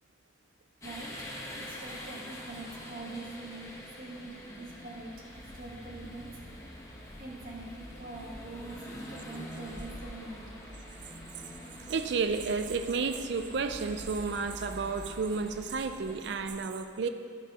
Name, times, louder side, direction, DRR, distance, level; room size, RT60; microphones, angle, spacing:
sound 1, 0.8-16.5, equal, 15° left, 1.1 m, -45 dB
voice 1, 0.8-1.1 1.5-6.3 7.2-10.7, right 2 dB, 45° right, -2 dB, 1.4 m, -44 dB
voice 2, 11.9-17.1, right 4 dB, 60° right, 9 dB, 0.4 m, -31 dB
11.5 x 4.9 x 4.8 m, 2.2 s
head